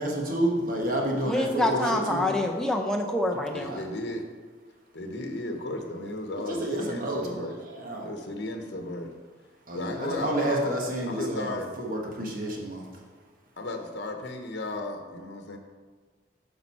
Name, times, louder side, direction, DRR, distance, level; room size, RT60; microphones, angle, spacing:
voice 1, 0.0-2.3 3.6-3.8 6.5-8.1 9.7-13.0, right 1 dB, 50° right, -1 dB, 1.3 m, -30 dB
voice 2, 1.3-3.7, left 1 dB, 5° left, 1 dB, 0.5 m, -26 dB
voice 3, 3.5-4.2 4.9-7.5 8.0-9.1 9.7-10.7 11.0-11.7 13.6-15.6, left 2 dB, 70° left, 4 dB, 0.9 m, -34 dB
8.9 x 5.4 x 4.2 m, 1.5 s
head